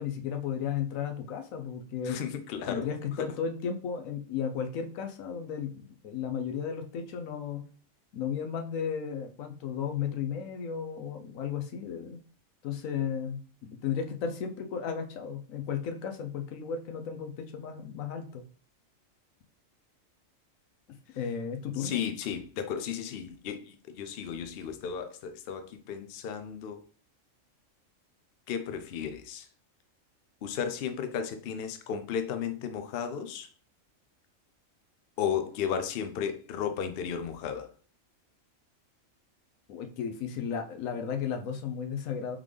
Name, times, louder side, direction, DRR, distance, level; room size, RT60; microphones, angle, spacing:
voice 1, 0.0-2.2 2.7-7.6 8.1-12.2 12.6-18.4 21.2-22.0 39.7-42.4, left 7 dB, 80° left, 1.0 m, -34 dB
voice 2, 2.0-2.9 3.2-3.3 21.8-26.8 28.5-29.5 30.4-33.5 35.2-37.7, left 7 dB, 60° left, 0.6 m, -34 dB
3.7 x 3.7 x 3.2 m
omnidirectional pair, 1.4 m